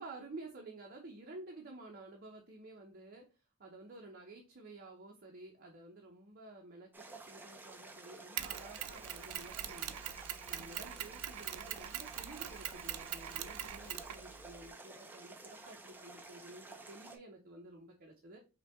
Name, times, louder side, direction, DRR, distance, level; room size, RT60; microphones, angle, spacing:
voice 1, 0.0-3.3 3.6-10.0 10.5-18.4, right 2 dB, 45° right, 0 dB, 0.7 m, -52 dB
sound 1, 6.9-17.2, right 2 dB, 10° right, 0.5 m, -52 dB
Mechanisms, 8.4-14.7, right 11 dB, 90° right, 0.4 m, -43 dB
5.4 x 2.2 x 3.5 m, 0.30 s
head